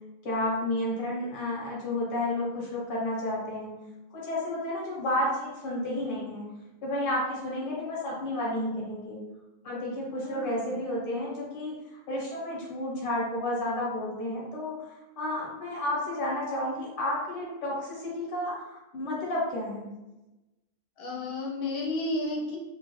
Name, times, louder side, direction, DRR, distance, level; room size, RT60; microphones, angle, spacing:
voice 1, 0.2-3.7 4.1-6.4 6.8-9.2 9.6-11.7 12.1-14.7 15.2-19.8, left 1 dB, 40° left, -4 dB, 1.1 m, -31 dB
voice 2, 10.2-10.7 21.0-22.6, left 2 dB, 85° left, -3 dB, 1.2 m, -32 dB
2.8 x 2.4 x 3.0 m, 1.0 s
omnidirectional pair, 1.6 m